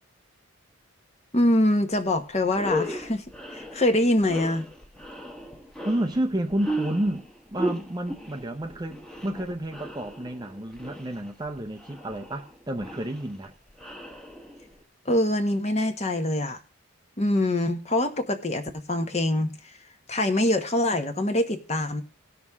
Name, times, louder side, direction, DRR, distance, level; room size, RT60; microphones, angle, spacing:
voice 1, 1.3-3.2 3.5-4.7 15.0-16.6 17.2-18.6 18.9-19.5 20.1-22.0, left 1 dB, 30° left, 1.1 m, -24 dB
sound 1, 2.0-2.1 2.5-14.8, equal, 5° left, 1.1 m, -36 dB
voice 2, 5.8-13.5, right 1 dB, 20° right, 0.6 m, -30 dB
18.0 x 6.3 x 3.6 m
head